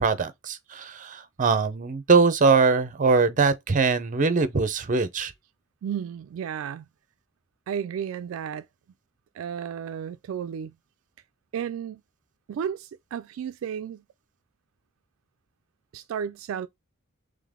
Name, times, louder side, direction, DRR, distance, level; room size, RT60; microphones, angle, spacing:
voice 1, 0.0-5.3, right 4 dB, 40° right, 0.6 m, -22 dB
voice 2, 5.8-6.9 7.7-8.7 9.3-10.7 11.5-12.0 12.5-14.0 15.9-16.7, right 8 dB, 70° right, 0.3 m, -33 dB
3.8 x 3.3 x 3.5 m
head